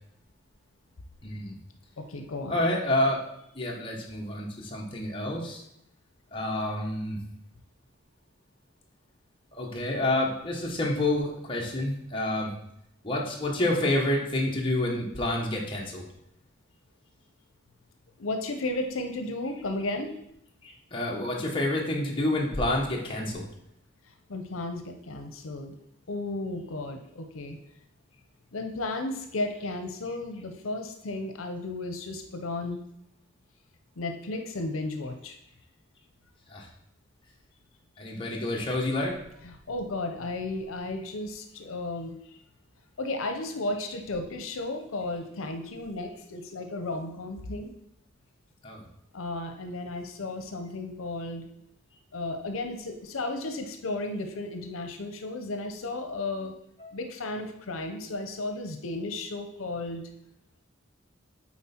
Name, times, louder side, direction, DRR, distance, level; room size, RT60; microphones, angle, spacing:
voice 1, 1.2-1.5 2.5-3.2 3.5-5.6 6.3-7.2 9.5-12.5 13.0-16.0 20.9-23.4 36.5-36.7 38.0-39.2 48.6-48.8 56.4-56.5 56.8-56.9, left 1 dB, 25° left, -2 dB, 1.2 m, -28 dB
voice 2, 2.0-2.6 18.2-20.2 24.3-25.8 26.1-27.6 28.5-32.8 34.0-35.4 39.4-42.4 43.0-47.7 49.1-51.5 52.1-56.5 56.9-60.0, left 2 dB, 85° left, 6 dB, 0.7 m, -34 dB
7.3 x 4.5 x 4.3 m, 0.77 s
head